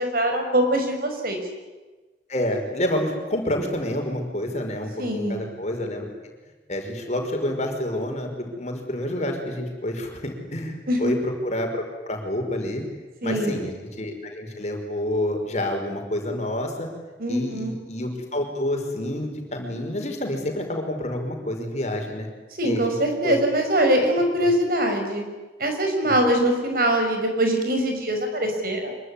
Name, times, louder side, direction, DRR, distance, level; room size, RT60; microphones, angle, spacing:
voice 1, 0.0-1.4 5.0-5.4 10.9-11.2 13.2-13.6 17.2-17.8 22.6-25.2 25.6-28.9, right 1 dB, 55° right, 4 dB, 5.9 m, -23 dB
voice 2, 2.3-6.1 6.7-12.8 13.2-13.7 14.0-16.9 17.3-22.3 22.6-22.8 23.2-23.4 26.0-26.2, left 1 dB, 40° left, 3 dB, 5.2 m, -28 dB
25.5 x 23.5 x 9.8 m, 1.2 s
head